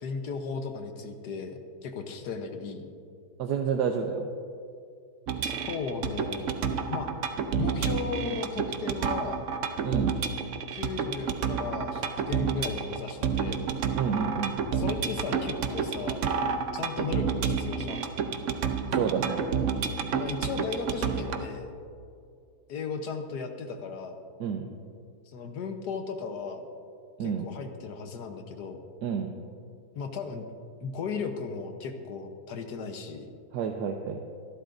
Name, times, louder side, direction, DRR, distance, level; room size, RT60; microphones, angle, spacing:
voice 1, 0.0-2.8 5.7-6.6 6.9-7.1 7.6-9.4 10.7-13.6 14.7-16.2 16.7-18.1 20.1-21.7 22.7-24.2 25.3-26.6 27.2-28.8 29.9-30.4 30.8-33.3, left 5 dB, 75° left, 5 dB, 1.5 m, -36 dB
voice 2, 3.4-4.2 9.8-10.2 13.9-14.5 18.9-19.4 24.4-24.6 27.2-27.4 29.0-29.3 33.5-34.3, right 7 dB, 80° right, 3 dB, 1.3 m, -29 dB
sound 1, 5.3-21.4, right 6 dB, 60° right, 0.9 m, -30 dB
25.0 x 11.5 x 2.6 m, 2.4 s
omnidirectional pair, 1.8 m